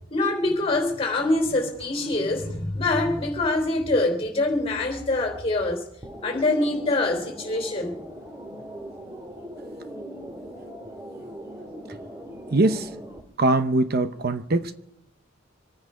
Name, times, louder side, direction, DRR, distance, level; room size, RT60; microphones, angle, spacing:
voice 1, 0.1-5.8 6.2-8.0, left 2 dB, 30° left, 3.4 m, -24 dB
sound 1, 6.0-13.2, equal, 15° right, 1.9 m, -40 dB
voice 2, 12.5-12.9 13.4-14.7, right 2 dB, 50° right, 0.8 m, -22 dB
25.5 x 9.6 x 5.0 m
head